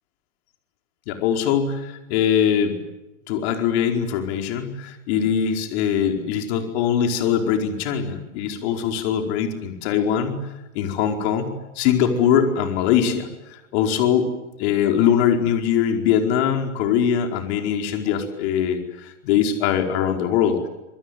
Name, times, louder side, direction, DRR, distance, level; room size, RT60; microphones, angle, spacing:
voice 1, 1.1-2.8 3.3-10.5 10.7-14.3 14.6-20.7, left 8 dB, 55° left, 4 dB, 4.9 m, -22 dB
27.0 x 22.5 x 9.3 m, 0.99 s
hypercardioid pair, 120°, 37 cm